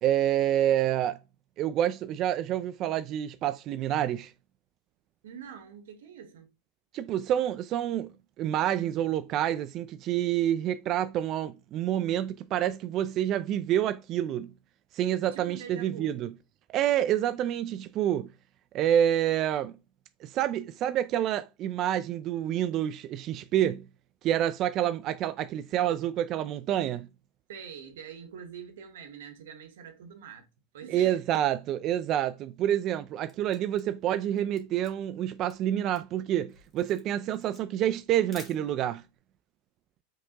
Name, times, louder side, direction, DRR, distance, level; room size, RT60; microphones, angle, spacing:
voice 1, 0.0-1.2 1.6-4.3 6.9-14.5 14.9-16.3 16.7-18.3 18.7-19.8 20.2-23.8 24.2-27.1 30.9-39.0, right 11 dB, 40° right, 0.3 m, -28 dB
voice 2, 5.2-6.5 15.3-16.2 27.5-30.5 30.7-31.2, right 7 dB, 85° right, 1.1 m, -45 dB
Camera, 33.3-39.1, left 4 dB, 20° left, 1.5 m, -54 dB
5.3 x 3.4 x 2.9 m
supercardioid pair, 130°, 0 cm